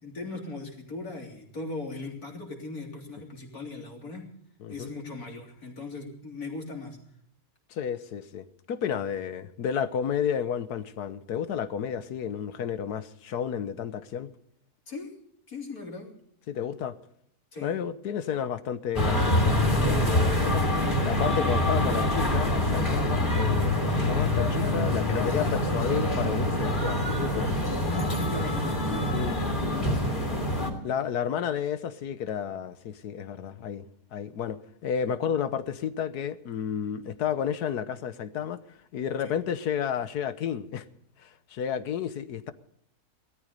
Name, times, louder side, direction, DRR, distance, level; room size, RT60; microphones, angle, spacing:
voice 1, 0.0-4.3 4.7-7.0 14.9-15.1 15.5-16.1 17.5-17.7 25.2-26.0 27.6-30.5 39.2-39.3, left 2 dB, 70° left, 4.0 m, -39 dB
voice 2, 7.7-14.3 16.5-17.0 17.6-20.7 21.0-27.5 29.1-29.4 30.8-33.8 34.1-38.6 38.9-40.8 41.2-42.5, left 8 dB, 90° left, 1.5 m, -31 dB
sound 1, 18.9-30.7, left 1 dB, 30° left, 3.1 m, -25 dB
18.0 x 13.5 x 5.3 m
omnidirectional pair, 1.6 m